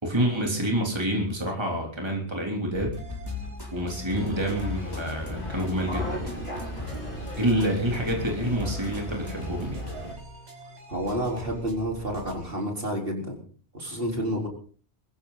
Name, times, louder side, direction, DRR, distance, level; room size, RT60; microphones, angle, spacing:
voice 1, 0.0-2.9 3.7-6.4 7.4-9.8, right 1 dB, 25° right, 1 dB, 3.4 m, -27 dB
sound 1, 2.7-9.8, left 2 dB, 20° left, 3.5 m, -37 dB
sound 2, 3.0-12.6, equal, 75° right, 6.3 m, -43 dB
sound 3, 4.1-10.1, equal, 50° left, 4.7 m, -39 dB
voice 2, 10.9-13.4 13.7-14.5, equal, 55° right, 1 dB, 4.4 m, -29 dB
23.0 x 14.5 x 4.0 m, 0.41 s
omnidirectional pair, 1.2 m